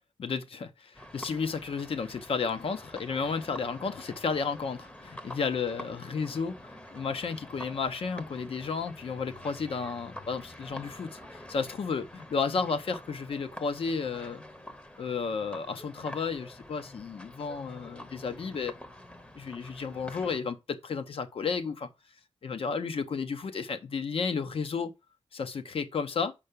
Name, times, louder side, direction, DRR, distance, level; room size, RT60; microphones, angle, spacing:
voice 1, 0.2-11.2 11.5-12.1 12.3-14.4 15.0-18.7 19.3-21.9 22.4-24.9 25.3-26.3, left 5 dB, 65° left, 1.0 m, -32 dB
sound 1, 0.9-20.4, left 1 dB, 10° left, 0.9 m, -47 dB
5.7 x 5.3 x 6.8 m
wide cardioid pair, 140°, 10 cm